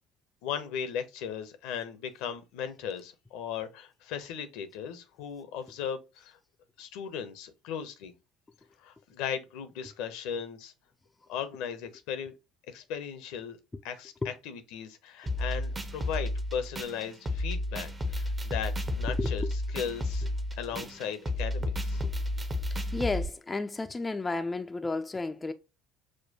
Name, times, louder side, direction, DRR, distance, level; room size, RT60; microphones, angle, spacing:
voice 1, 0.4-6.4 6.8-8.1 8.8-10.7 11.3-12.3 12.7-13.6 13.8-19.4 19.7-20.3 20.6-22.0, left 8 dB, 65° left, 0.7 m, -37 dB
sound 1, 15.3-23.2, left 1 dB, 20° right, 0.7 m, -32 dB
voice 2, 19.2-19.5 22.0-22.1 22.7-25.5, left 3 dB, 20° left, 0.4 m, -32 dB
6.4 x 2.2 x 2.7 m
figure-of-eight pair, 60°, 0 cm